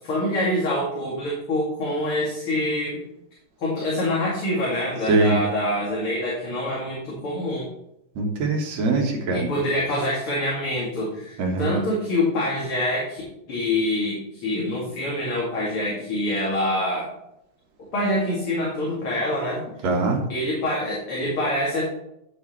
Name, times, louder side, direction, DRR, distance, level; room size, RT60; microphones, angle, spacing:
voice 1, 0.0-3.0 3.6-7.6 9.3-13.2 13.5-17.1 17.8-19.6 20.3-21.8, left 1 dB, 45° left, -5 dB, 2.8 m, -25 dB
voice 2, 8.2-9.5 11.4-11.7 19.8-20.2, right 3 dB, 60° right, 1 dB, 2.5 m, -22 dB
10.0 x 7.2 x 3.2 m, 0.81 s
omnidirectional pair, 3.8 m